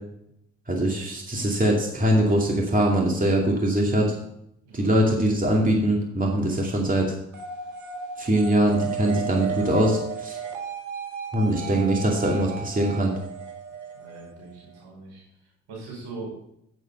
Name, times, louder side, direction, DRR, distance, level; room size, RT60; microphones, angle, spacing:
voice 1, 0.7-4.1 4.7-7.1 8.2-10.4 11.3-13.1, right 1 dB, 25° right, 0 dB, 2.5 m, -22 dB
sound 1, 7.3-14.8, right 6 dB, 60° right, 2.1 m, -35 dB
voice 2, 13.9-15.2 15.7-16.4, right 3 dB, 75° right, -2 dB, 5.0 m, -40 dB
7.9 x 7.6 x 6.5 m, 0.75 s
hypercardioid pair, 50°, 33 cm